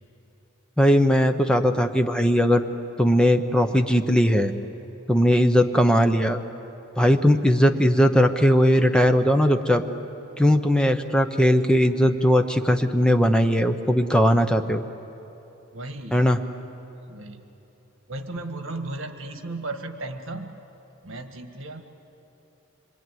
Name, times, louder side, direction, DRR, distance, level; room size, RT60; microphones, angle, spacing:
voice 1, 0.8-2.6 3.0-4.5 5.1-6.4 7.0-9.8 10.4-14.8 16.1-16.4, equal, 5° left, 6 dB, 0.9 m, -19 dB
voice 2, 15.7-16.3 17.1-17.4 18.1-20.6 21.0-21.8, right 2 dB, 70° right, 6 dB, 1.8 m, -35 dB
26.0 x 24.0 x 9.4 m, 3.0 s
head